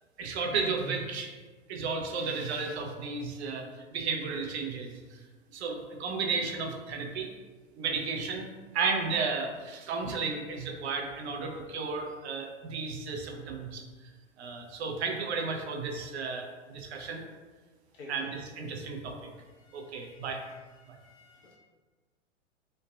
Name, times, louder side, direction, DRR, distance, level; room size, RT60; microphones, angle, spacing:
voice 1, 0.2-1.3 1.7-5.2 5.5-7.3 7.7-13.8 14.4-17.2 18.1-19.2 19.7-20.4 20.9-21.0, right 4 dB, 60° right, 2 dB, 0.6 m, -33 dB
voice 2, 19.6-21.6, left 3 dB, 50° left, -5 dB, 1.1 m, -54 dB
3.0 x 2.5 x 2.2 m, 1.3 s
figure-of-eight pair, 105°, 38 cm